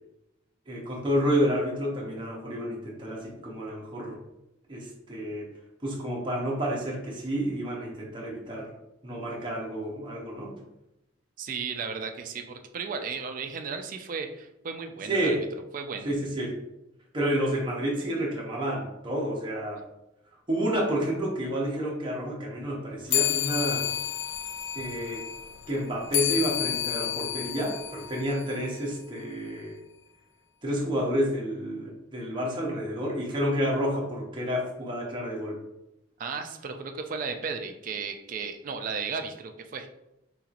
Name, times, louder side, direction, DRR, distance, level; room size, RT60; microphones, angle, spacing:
voice 1, 0.7-4.2 4.7-5.5 5.8-8.7 9.0-10.5 15.0-15.5 16.0-16.6 17.1-19.8 20.5-23.9 24.7-25.3 25.7-29.8 30.6-35.6, equal, 25° right, -2 dB, 0.7 m, -30 dB
voice 2, 11.4-15.4 15.7-16.1 36.2-39.9, right 5 dB, 45° right, 6 dB, 0.3 m, -35 dB
sound 1, 23.1-28.9, left 11 dB, 75° left, 0.3 m, -31 dB
3.8 x 2.9 x 2.4 m, 0.90 s
head